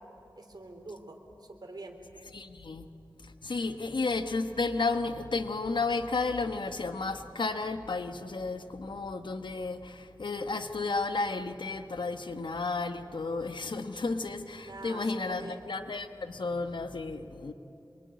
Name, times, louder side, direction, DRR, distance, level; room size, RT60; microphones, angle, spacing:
voice 1, 0.4-2.0 14.6-15.6, right 2 dB, 55° right, 3 dB, 3.5 m, -45 dB
voice 2, 2.3-2.9 3.4-17.5, left 3 dB, 75° left, 8 dB, 1.2 m, -32 dB
25.5 x 23.0 x 9.6 m, 2.9 s
wide cardioid pair, 80°, 8 cm